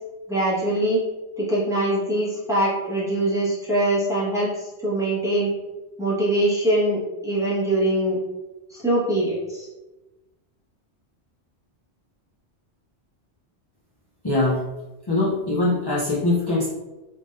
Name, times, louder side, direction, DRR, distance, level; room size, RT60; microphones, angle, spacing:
voice 1, 0.3-1.0 1.4-4.5 4.8-5.5 6.0-8.2 8.7-9.7, right 1 dB, 5° right, -8 dB, 1.1 m, -23 dB
voice 2, 14.2-14.6 15.1-16.7, left 2 dB, 30° left, -6 dB, 0.4 m, -22 dB
3.5 x 3.5 x 2.5 m, 1.1 s
omnidirectional pair, 1.2 m